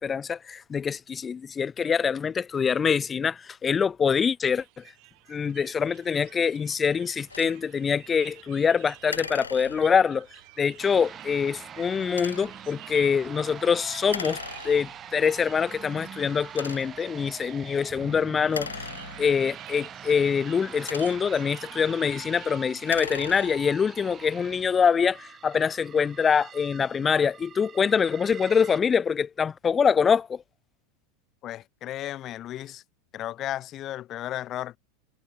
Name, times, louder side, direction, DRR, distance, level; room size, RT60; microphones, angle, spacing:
voice 1, 0.0-4.6 5.3-10.3 10.6-14.4 14.6-18.9 19.2-30.4, left 6 dB, 25° left, 0.5 m, -24 dB
sound 1, 4.0-22.6, right 31 dB, 50° right, 4.9 m, -51 dB
sound 2, 7.3-7.6 9.1-10.1 12.1-12.6 14.1-15.1 15.8-15.9 16.5-17.1 18.4-19.6 20.6-21.5 22.7-23.8, left 5 dB, 85° left, 1.3 m, -38 dB
sound 3, 10.8-28.8, right 8 dB, 30° right, 4.8 m, -44 dB
voice 2, 31.4-32.8 33.1-34.8, left 13 dB, 40° left, 1.5 m, -34 dB
figure-of-eight pair, 90°, 0 cm